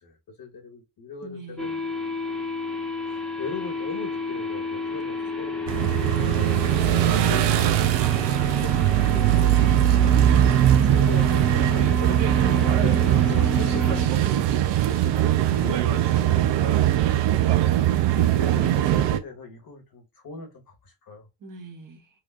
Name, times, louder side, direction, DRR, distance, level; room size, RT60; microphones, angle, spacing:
voice 1, 0.0-1.7 3.0-7.8 8.3-9.7 10.6-14.6 15.0-15.2 15.5-16.9 17.9-21.3, left 4 dB, 45° left, 1.4 m, -39 dB
voice 2, 1.2-1.9 6.0-7.0 21.4-22.1, right 3 dB, 40° right, 1.5 m, -44 dB
sound 1, 1.6-14.1, left 1 dB, ahead, 1.2 m, -31 dB
sound 2, 5.7-19.2, right 12 dB, 60° right, 0.7 m, -20 dB
4.7 x 2.7 x 2.5 m
hypercardioid pair, 50°, 49 cm